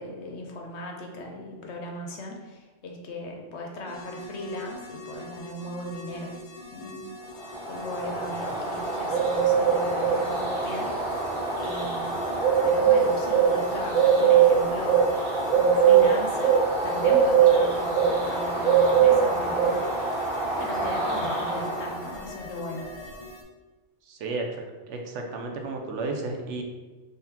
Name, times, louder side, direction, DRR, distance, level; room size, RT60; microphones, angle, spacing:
voice 1, 0.0-6.3 6.7-7.1 7.7-10.9 11.6-12.2 12.6-15.1 15.5-19.7 20.5-22.9, left 1 dB, 65° left, 0 dB, 0.9 m, -37 dB
sound 1, 3.9-23.4, left 1 dB, 35° left, 0.6 m, -43 dB
Bird, 7.5-22.2, right 6 dB, 50° right, 1.2 m, -22 dB
voice 2, 24.0-26.6, right 3 dB, 75° right, 2 dB, 0.9 m, -33 dB
3.8 x 3.3 x 2.8 m, 1.3 s
omnidirectional pair, 1.3 m